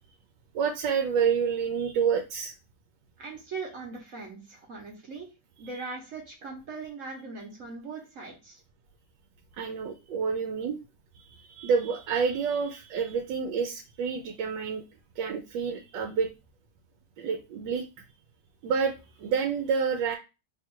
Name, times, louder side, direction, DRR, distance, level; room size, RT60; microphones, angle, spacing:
voice 1, 0.5-2.5 9.5-10.8 11.1-14.8 15.2-16.3 17.2-17.8 18.6-20.2, right 6 dB, 75° right, 4 dB, 1.2 m, -28 dB
voice 2, 3.2-5.3 5.6-8.6, right 4 dB, 55° right, 0 dB, 1.1 m, -40 dB
3.1 x 2.4 x 4.3 m, 0.29 s
omnidirectional pair, 2.0 m